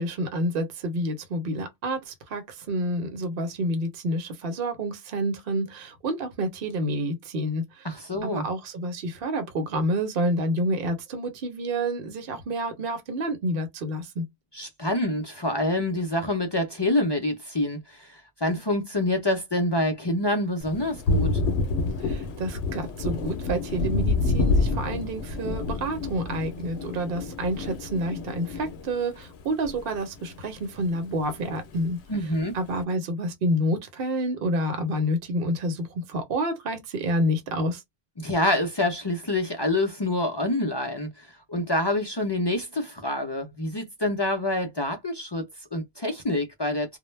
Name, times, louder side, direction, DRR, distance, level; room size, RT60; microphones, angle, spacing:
voice 1, 0.0-14.3 22.0-32.0 32.5-37.8, right 1 dB, 60° right, 0.9 m, -29 dB
voice 2, 7.8-8.5 14.5-21.4 32.1-32.5 38.2-47.0, left 1 dB, 40° left, 0.4 m, -27 dB
Thunder, 20.6-30.4 30.7-31.8, left 3 dB, 75° left, 0.9 m, -28 dB
2.1 x 2.1 x 3.1 m
omnidirectional pair, 1.1 m